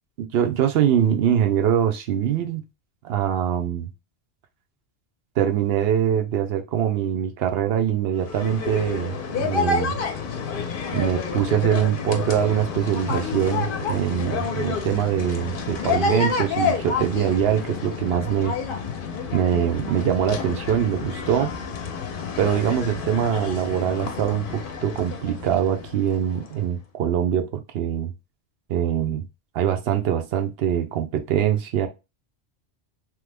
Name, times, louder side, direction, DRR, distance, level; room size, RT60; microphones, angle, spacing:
voice 1, 0.3-2.6 3.0-3.9 5.4-10.0 10.9-18.6 19.3-21.5 22.4-27.5 27.7-28.1 28.7-29.2 29.5-31.9, right 9 dB, 70° right, 0.8 m, -23 dB
sound 1, 8.2-26.6, left 5 dB, 60° left, 0.7 m, -29 dB
3.1 x 2.0 x 3.3 m
omnidirectional pair, 1.1 m